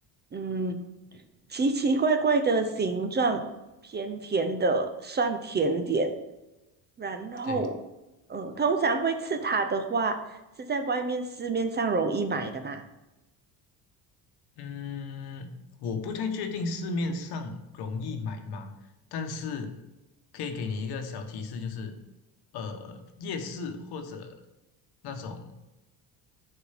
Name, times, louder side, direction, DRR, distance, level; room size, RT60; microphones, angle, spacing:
voice 1, 0.3-0.8 1.5-3.4 3.8-6.1 7.0-7.8 8.3-10.2 10.6-12.8, right 3 dB, 25° right, 8 dB, 0.6 m, -27 dB
voice 2, 14.6-15.5 15.8-18.7 19.1-19.8 20.3-22.0 22.5-24.3 25.0-25.5, left 4 dB, 70° left, 6 dB, 1.2 m, -34 dB
6.8 x 4.4 x 5.7 m, 1.0 s
cardioid pair, 120°, 40 cm